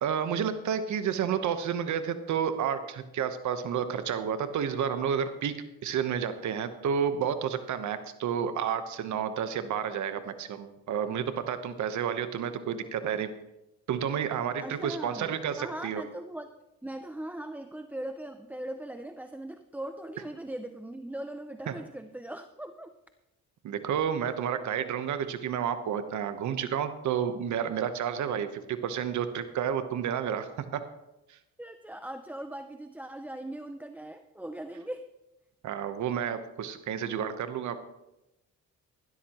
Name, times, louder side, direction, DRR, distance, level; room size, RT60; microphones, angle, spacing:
voice 1, 0.0-5.5 5.8-13.3 13.9-16.0 21.7-21.8 23.6-30.8 35.6-37.8, right 8 dB, 70° right, 10 dB, 1.0 m, -30 dB
voice 2, 14.6-16.5 16.8-23.0 31.6-35.1, right 1 dB, 5° right, 9 dB, 0.5 m, -40 dB
17.0 x 12.5 x 3.0 m, 0.93 s
cardioid pair, 90°, 30 cm